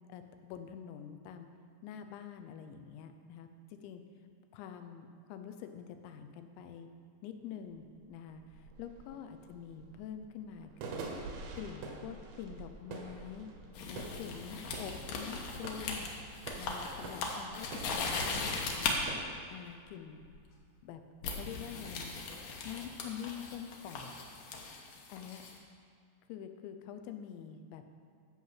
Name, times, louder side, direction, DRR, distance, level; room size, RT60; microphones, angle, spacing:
voice 1, 0.1-1.5 1.8-3.5 3.8-4.0 4.5-6.9 7.2-11.1 11.5-13.5 13.9-16.1 16.6-19.0 19.5-20.2 20.8-21.0 21.4-22.2 22.6-24.1 25.1-25.4 26.3-27.9, left 8 dB, 85° left, 7 dB, 3.1 m, -46 dB
sound 1, 7.4-7.5 7.8-19.3, right 3 dB, 80° right, 3.4 m, -47 dB
sound 2, 13.7-19.0 20.2-20.5 21.2-25.5, left 4 dB, 70° left, 2.3 m, -39 dB
12.5 x 5.6 x 7.5 m, 2.3 s
omnidirectional pair, 5.2 m